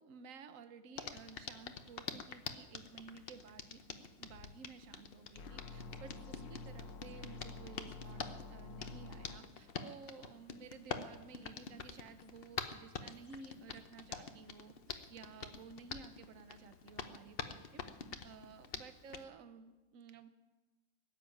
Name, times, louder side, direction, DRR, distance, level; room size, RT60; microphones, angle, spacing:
voice 1, 0.0-17.8 18.2-20.3, right 5 dB, 50° right, 10 dB, 1.2 m, -54 dB
Hands, 1.0-19.2, left 5 dB, 45° left, 0.8 m, -47 dB
sound 1, 5.4-9.4, left 3 dB, 85° left, 1.6 m, -49 dB
18.5 x 7.6 x 9.8 m, 1.1 s
omnidirectional pair, 1.9 m